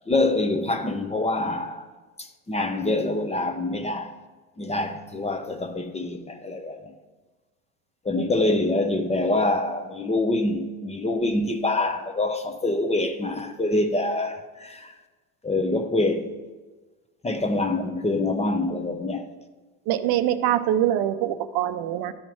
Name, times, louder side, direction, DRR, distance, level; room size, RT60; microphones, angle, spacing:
voice 1, 0.1-1.9 2.5-4.2 4.6-6.9 8.0-14.9 15.4-16.4 17.2-19.3, left 2 dB, 15° left, 0.8 m, -25 dB
voice 2, 19.9-22.1, right 11 dB, 60° right, 0.6 m, -24 dB
12.0 x 4.3 x 4.6 m
supercardioid pair, 85°, 42 cm